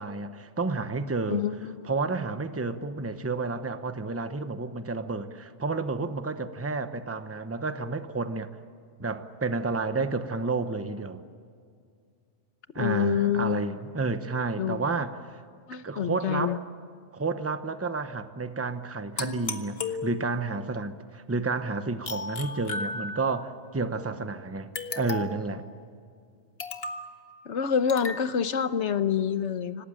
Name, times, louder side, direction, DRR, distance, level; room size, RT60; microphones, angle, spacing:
voice 1, 0.0-1.4 1.8-8.5 9.0-11.2 12.7-15.4 15.8-16.6 17.1-25.6, right 3 dB, 15° right, 10 dB, 0.9 m, -31 dB
voice 2, 1.3-1.9 12.8-13.6 14.6-14.8 15.7-16.6 27.5-29.9, left 8 dB, 80° left, 12 dB, 1.3 m, -27 dB
sound 1, 19.2-20.6 22.1-23.5 24.8-25.5 26.6-27.1 27.9-28.2, left 3 dB, 60° left, 1.7 m, -35 dB
26.0 x 18.5 x 9.0 m, 2.3 s
omnidirectional pair, 1.2 m